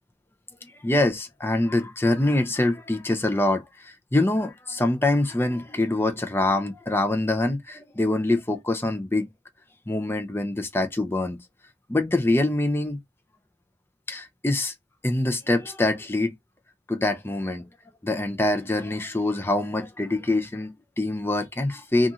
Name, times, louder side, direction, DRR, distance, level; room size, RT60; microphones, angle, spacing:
voice 1, 0.6-9.3 9.9-11.4 11.9-13.0 14.1-14.7 15.0-16.3 16.9-17.6 18.0-22.1, left 2 dB, 10° left, 0.5 m, -25 dB
2.6 x 2.4 x 2.7 m
head